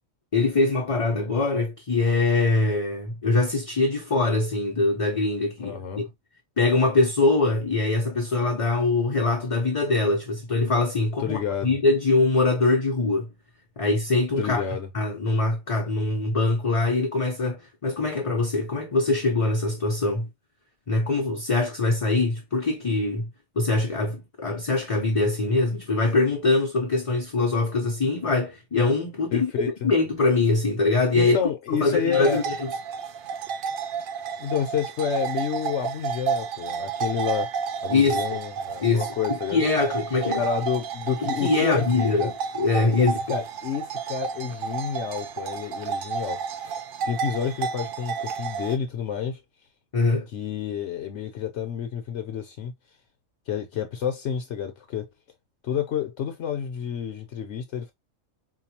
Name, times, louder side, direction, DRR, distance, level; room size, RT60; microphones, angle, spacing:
voice 1, 0.3-6.1 6.6-13.3 13.8-14.6 14.9-20.3 20.9-23.3 23.6-29.5 29.8-31.4 31.8-32.7 37.9-38.2 38.8-40.4 41.4-43.2 49.9-50.3, left 3 dB, 35° left, 0.5 m, -23 dB
voice 2, 5.6-6.1 11.2-11.8 14.4-14.9 29.3-29.9 31.1-32.4 34.4-37.5 37.8-39.6 40.3-42.3 43.0-49.4 50.3-52.7 53.5-55.1 55.6-57.9, left 8 dB, 65° left, 0.9 m, -29 dB
sound 1, 32.1-48.8, right 6 dB, 65° right, 0.5 m, -31 dB
4.6 x 2.3 x 2.8 m
omnidirectional pair, 1.4 m